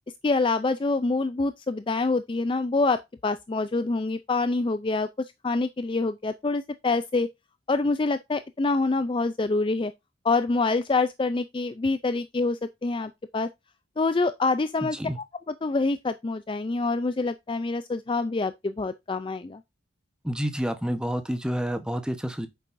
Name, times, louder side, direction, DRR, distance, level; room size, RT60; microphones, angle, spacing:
voice 1, 0.2-7.3 7.7-9.9 10.2-13.5 14.0-15.0 15.6-19.6, left 3 dB, 25° left, 0.3 m, -26 dB
voice 2, 14.8-15.2 20.2-22.5, equal, 5° right, 0.9 m, -29 dB
9.1 x 6.9 x 2.6 m
head